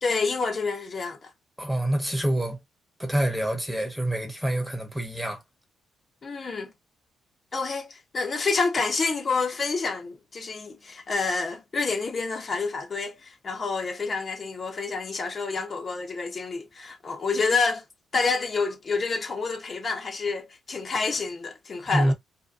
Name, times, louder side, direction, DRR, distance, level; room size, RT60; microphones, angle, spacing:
voice 1, 0.0-1.3 6.2-6.7 7.5-17.8 18.1-22.1, left 4 dB, 40° left, 0.8 m, -28 dB
voice 2, 1.6-2.6 3.0-5.4 21.9-22.1, right 1 dB, 5° right, 1.0 m, -26 dB
2.6 x 2.2 x 2.4 m
cardioid pair, 90°, 0 cm